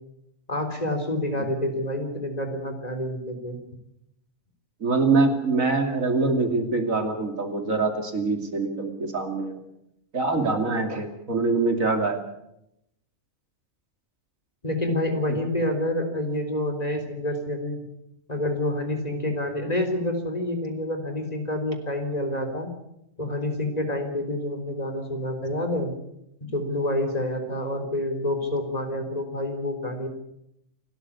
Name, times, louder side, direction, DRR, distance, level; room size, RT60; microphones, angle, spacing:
voice 1, 0.5-3.6 14.6-17.8 18.3-22.7 23.2-25.9 26.5-30.1, left 1 dB, 30° left, 5 dB, 3.9 m, -28 dB
voice 2, 4.8-9.6 10.1-12.2, right 3 dB, 80° right, 5 dB, 3.2 m, -24 dB
28.0 x 13.0 x 8.5 m, 0.82 s
omnidirectional pair, 1.4 m